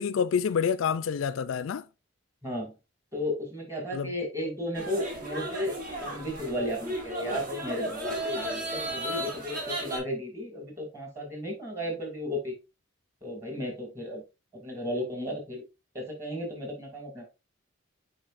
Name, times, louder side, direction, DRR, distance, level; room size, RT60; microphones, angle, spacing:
voice 1, 0.0-1.9 3.9-4.1, left 6 dB, 80° left, 0.4 m, -27 dB
voice 2, 2.4-2.7 3.1-5.7 6.0-12.6 13.2-14.2 14.5-15.6 15.9-17.2, left 1 dB, 15° right, 2.4 m, -34 dB
sound 1, 4.7-10.0, right 1 dB, 45° right, 1.8 m, -34 dB
7.6 x 5.0 x 2.5 m
head